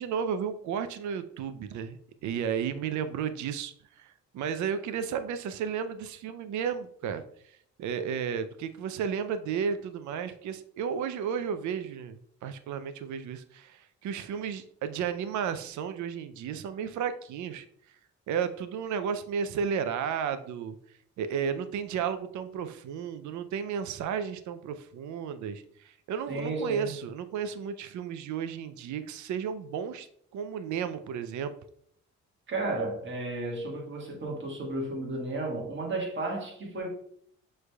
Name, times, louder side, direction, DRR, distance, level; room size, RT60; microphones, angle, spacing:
voice 1, 0.0-17.7 18.3-20.8 21.2-30.1 30.3-31.5, right 7 dB, 75° right, 0.5 m, -33 dB
voice 2, 26.3-26.9 32.5-36.9, right 2 dB, 40° right, 1.5 m, -33 dB
6.2 x 3.2 x 2.2 m
cardioid pair, 90°, 30 cm